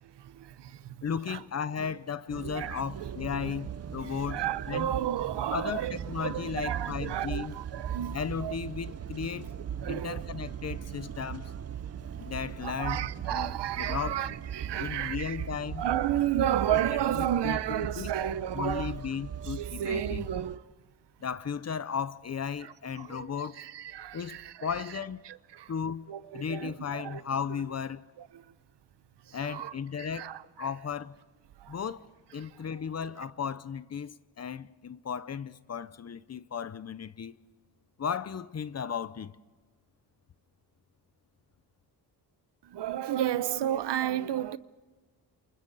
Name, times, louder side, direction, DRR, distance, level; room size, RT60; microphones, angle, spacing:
voice 1, 0.0-1.4 1.8-1.9 2.4-3.5 4.0-8.6 9.8-10.3 12.2-12.3 12.6-15.4 15.8-18.9 19.4-20.6 22.6-24.7 25.2-25.7 26.1-27.2 28.2-28.5 29.3-30.7 31.6-31.8 32.4-32.6 42.6-44.6, right 11 dB, 75° right, 0.9 m, -33 dB
voice 2, 1.0-4.9 5.5-7.5 8.1-9.5 9.9-11.5 12.2-13.0 13.3-14.2 14.8-15.8 16.7-16.8 17.1-20.3 21.2-23.6 24.1-25.2 25.7-26.1 26.3-28.0 29.3-31.1 31.7-32.1 32.3-37.4 38.0-39.3, left 7 dB, 35° left, 0.7 m, -35 dB
sound 1, 2.3-20.6, right 8 dB, 35° right, 0.6 m, -39 dB
30.0 x 28.0 x 4.1 m
wide cardioid pair, 130°, 42 cm